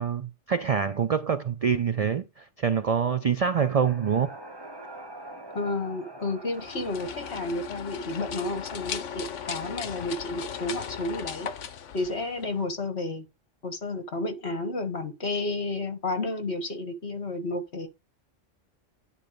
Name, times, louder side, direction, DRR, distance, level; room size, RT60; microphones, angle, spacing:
voice 1, 0.0-4.3, right 7 dB, 70° right, 0.3 m, -26 dB
sound 1, 3.2-10.9, right 1 dB, 20° right, 1.1 m, -47 dB
voice 2, 5.6-11.5 11.9-13.3 13.6-17.9, left 2 dB, 60° left, 2.0 m, -31 dB
sound 2, 6.5-12.7, left 8 dB, 75° left, 1.2 m, -37 dB
10.0 x 4.1 x 5.1 m
omnidirectional pair, 1.3 m